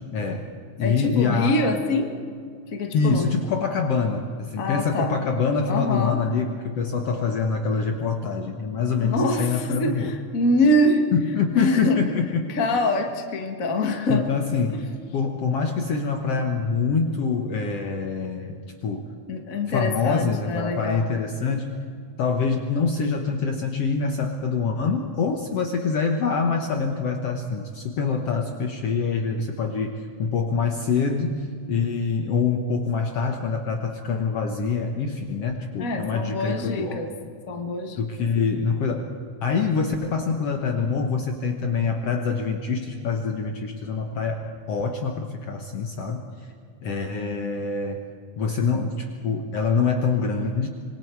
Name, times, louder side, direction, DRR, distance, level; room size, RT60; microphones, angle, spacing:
voice 1, 0.1-0.5 0.8-1.6 2.9-10.1 11.1-12.5 14.1-14.8 15.1-19.1 19.7-21.7 22.2-37.0 38.0-39.1 39.4-46.3 46.8-48.1 48.4-50.7, left 5 dB, 60° left, 4 dB, 1.9 m, -25 dB
voice 2, 0.8-2.1 2.7-3.4 4.6-5.2 5.7-6.2 9.0-11.0 11.5-12.0 12.5-14.3 19.3-21.1 35.8-37.1 37.5-38.0 47.0-47.6, left 1 dB, 35° left, 4 dB, 1.6 m, -25 dB
26.0 x 23.0 x 4.7 m, 2.2 s
omnidirectional pair, 3.6 m